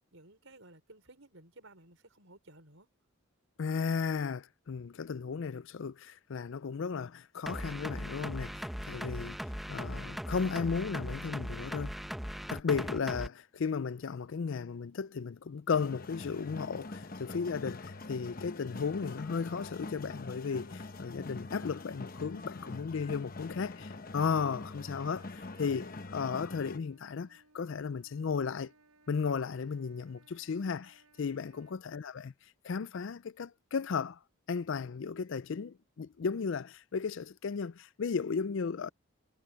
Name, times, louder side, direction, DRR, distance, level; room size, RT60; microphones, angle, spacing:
voice 1, 0.1-2.9, right 2 dB, 60° right, 5.1 m, -56 dB
voice 2, 3.6-9.4 9.7-11.9 12.5-28.7 29.1-32.3 32.6-34.2 34.5-38.9, left 5 dB, 60° left, 0.4 m, -35 dB
sound 1, 7.5-13.3, equal, ahead, 1.1 m, -39 dB
sound 2, 15.7-26.8, left 2 dB, 40° left, 0.9 m, -44 dB
Trumpet, 24.7-31.8, right 3 dB, 90° right, 7.4 m, -65 dB
head